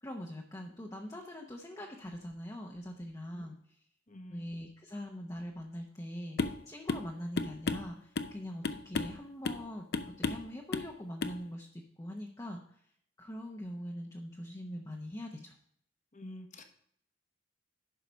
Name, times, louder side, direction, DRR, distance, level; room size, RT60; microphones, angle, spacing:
voice 1, 0.0-3.8 4.3-12.8 13.2-15.5, equal, 20° left, 1 dB, 0.8 m, -43 dB
voice 2, 4.1-4.4 16.1-16.6, left 1 dB, 45° left, 6 dB, 1.1 m, -47 dB
sound 1, 6.4-6.6 6.9-7.1 7.4-8.4 8.6-9.2 9.4-9.7 9.9-10.5 10.7-10.9 11.2-11.4, left 3 dB, 60° left, 0.6 m, -33 dB
11.5 x 4.8 x 5.2 m, 0.69 s
head